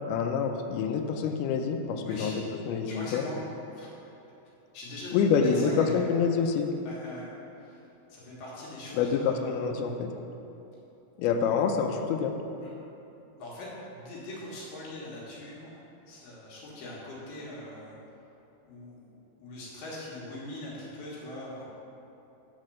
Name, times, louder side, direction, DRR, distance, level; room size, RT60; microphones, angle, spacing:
voice 1, 0.1-2.3 2.7-3.2 5.1-6.7 8.9-10.1 11.2-12.4, left 6 dB, 85° left, 4 dB, 2.3 m, -27 dB
voice 2, 2.0-2.4 2.8-3.4 3.7-3.9 4.7-6.3 6.9-7.3 7.6-7.8 8.1-9.5 12.6-12.8 13.4-15.8 16.1-18.0 18.6-21.6, left 1 dB, 70° left, -7 dB, 3.4 m, -42 dB
9.5 x 4.4 x 6.2 m, 3.0 s
omnidirectional pair, 4.9 m